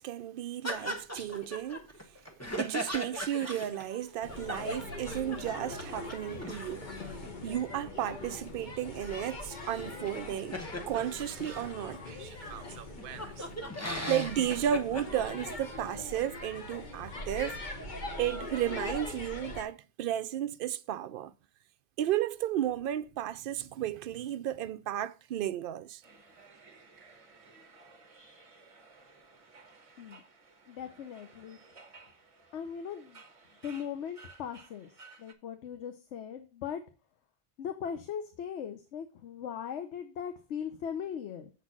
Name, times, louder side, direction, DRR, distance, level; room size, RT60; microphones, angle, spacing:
voice 1, 0.0-1.9 2.6-6.9 7.4-10.6 10.9-13.5 14.0-17.6 18.2-21.3 22.0-26.0, right 11 dB, 60° right, 0.6 m, -33 dB
sound 1, 0.6-5.5 5.8-5.9 6.1-11.7 12.3-12.4 12.6-15.2, equal, 15° left, 1.0 m, -39 dB
sound 2, 4.2-19.6, left 2 dB, 45° left, 1.1 m, -42 dB
sound 3, 26.0-35.3, right 3 dB, 30° right, 1.0 m, -56 dB
voice 2, 30.7-31.6 32.5-33.2 33.6-34.9 35.2-36.8 37.6-41.5, left 8 dB, 80° left, 1.0 m, -39 dB
7.5 x 4.0 x 6.0 m
omnidirectional pair, 1.2 m